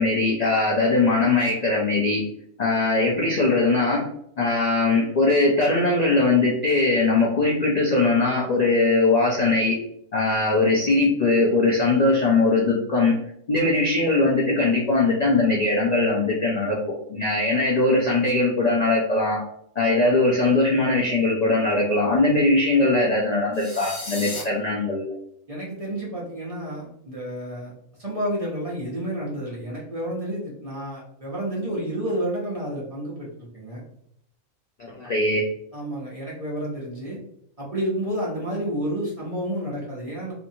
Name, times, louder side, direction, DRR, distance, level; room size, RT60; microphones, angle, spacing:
voice 1, 0.0-2.2 2.6-4.1 4.4-9.8 10.1-13.2 13.5-16.8 17.1-19.4 19.8-25.1 34.9-35.4, left 2 dB, 85° left, -3 dB, 0.3 m, -20 dB
sound 1, 23.5-24.4, left 2 dB, 30° left, 0.7 m, -34 dB
voice 2, 25.5-27.7 28.0-33.8 35.7-37.2 37.6-40.3, right 1 dB, 35° right, -5 dB, 0.6 m, -30 dB
2.7 x 2.5 x 2.6 m, 0.70 s
omnidirectional pair, 1.4 m